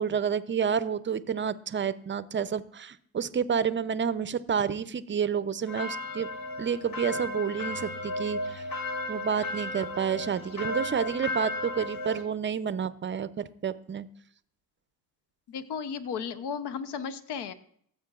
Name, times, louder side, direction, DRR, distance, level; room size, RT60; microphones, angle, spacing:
voice 1, 0.0-6.3 6.6-8.7 9.1-14.1, right 7 dB, 30° right, 15 dB, 0.5 m, -29 dB
sound 1, 5.7-12.2, left 2 dB, 55° left, 1.3 m, -34 dB
voice 2, 15.5-17.5, left 6 dB, 80° left, 12 dB, 0.7 m, -34 dB
15.0 x 7.6 x 2.4 m, 0.63 s
cardioid pair, 85°, 40 cm